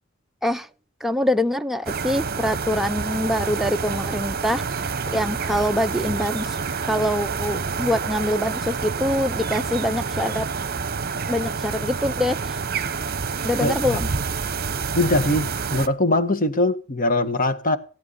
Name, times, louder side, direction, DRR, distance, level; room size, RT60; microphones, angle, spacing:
voice 1, 1.0-4.6 5.1-6.6 6.9-10.5 11.3-12.6 13.4-14.1, left 1 dB, ahead, 0.6 m, -24 dB
sound 1, 1.9-15.9, right 5 dB, 50° right, 1.1 m, -28 dB
voice 2, 13.6-14.0 14.9-17.8, left 2 dB, 45° left, 1.5 m, -22 dB
17.0 x 9.5 x 5.5 m
head